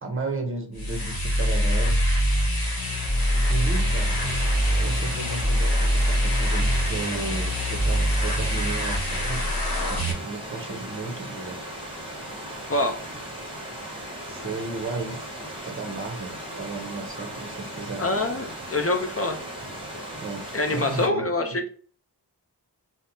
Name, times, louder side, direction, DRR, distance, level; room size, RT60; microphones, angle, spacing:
voice 1, 0.0-2.0 3.3-4.2 4.7-9.4 9.9-11.6 14.3-15.3 15.6-18.1 19.7-21.2 21.5-21.6, right 3 dB, 30° right, 3 dB, 0.7 m, -34 dB
sound 1, 0.7-10.1, equal, 60° left, 1.0 m, -24 dB
Stream / Liquid, 2.1-21.1, right 1 dB, 10° right, 1.1 m, -38 dB
voice 2, 18.0-19.4 20.5-21.7, left 2 dB, 35° left, 4 dB, 0.5 m, -25 dB
3.2 x 2.1 x 2.7 m, 0.43 s
wide cardioid pair, 65°, 42 cm